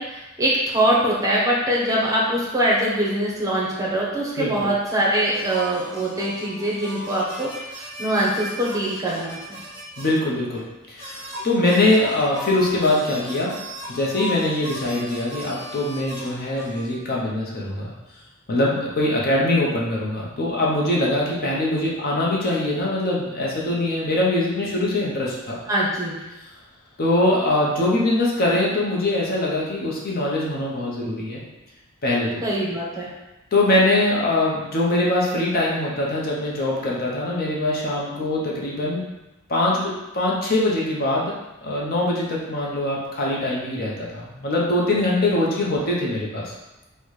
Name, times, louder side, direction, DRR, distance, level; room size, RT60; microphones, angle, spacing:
voice 1, 0.0-9.6 25.7-26.2 32.4-33.1, right 1 dB, 15° right, -5 dB, 0.7 m, -23 dB
voice 2, 4.4-4.7 10.0-13.6 13.9-17.9 18.5-25.6 27.0-31.4 32.0-32.4 33.5-39.0 39.5-41.3 41.6-46.5, left 1 dB, 45° left, -4 dB, 0.7 m, -22 dB
sound 1, 5.3-10.2 10.5-10.6 11.0-16.9, left 1 dB, 15° left, 1.4 m, -37 dB
4.1 x 2.1 x 3.1 m, 1.0 s
head